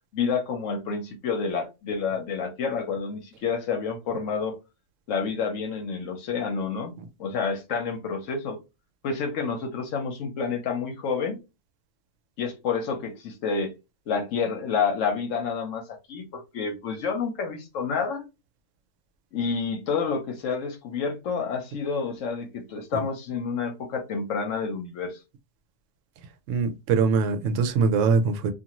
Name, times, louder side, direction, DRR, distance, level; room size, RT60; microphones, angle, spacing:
voice 1, 0.1-4.6 5.1-6.9 7.2-8.6 9.0-11.4 12.4-13.7 14.1-18.2 19.3-25.2, left 5 dB, 75° left, 1.0 m, -29 dB
voice 2, 26.5-28.5, right 5 dB, 75° right, 0.9 m, -23 dB
2.5 x 2.5 x 2.9 m
omnidirectional pair, 1.3 m